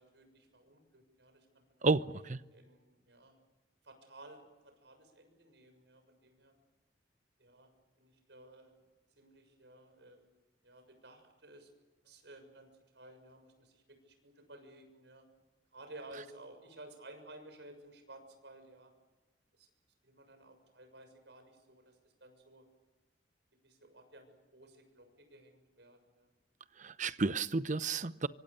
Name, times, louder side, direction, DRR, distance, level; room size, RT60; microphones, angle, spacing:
voice 1, 0.0-2.0 2.5-3.4 3.8-6.5 7.4-7.7 8.0-8.9 9.1-10.3 10.6-11.7 12.0-15.3 15.7-18.9 19.5-19.7 20.0-22.6 23.6-26.3, right 1 dB, 75° right, 6.9 m, -55 dB
voice 2, 26.8-28.3, right 3 dB, 45° right, 0.8 m, -31 dB
25.5 x 24.5 x 6.8 m
head